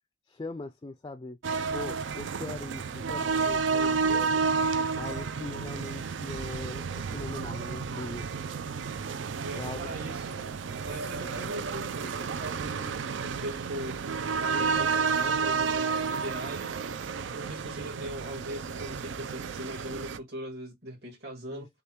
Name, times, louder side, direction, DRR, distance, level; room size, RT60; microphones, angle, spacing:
voice 1, 0.3-1.4 1.7-4.4 5.0-8.3 9.5-9.9 21.5-21.7, left 2 dB, 25° left, 0.3 m, -40 dB
sound 1, 1.4-20.2, right 5 dB, 80° right, 0.5 m, -31 dB
voice 2, 9.4-10.5 10.9-13.0 13.2-14.0 14.4-16.9 17.3-21.7, right 1 dB, 55° right, 2.1 m, -40 dB
6.5 x 2.3 x 3.0 m
head